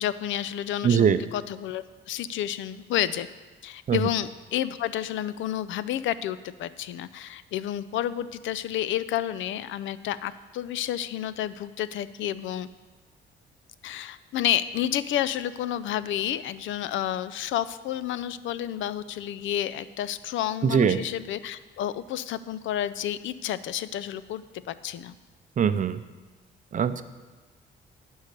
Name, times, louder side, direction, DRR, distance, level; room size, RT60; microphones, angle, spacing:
voice 1, 0.0-3.3 3.6-12.7 13.8-25.1, left 11 dB, 75° left, 16 dB, 0.5 m, -30 dB
voice 2, 0.8-1.2 3.9-4.0 20.6-21.0 25.6-26.0 26.7-27.0, right 7 dB, 40° right, 12 dB, 0.5 m, -21 dB
10.5 x 5.5 x 6.6 m, 1.3 s
cardioid pair, 90°, 20 cm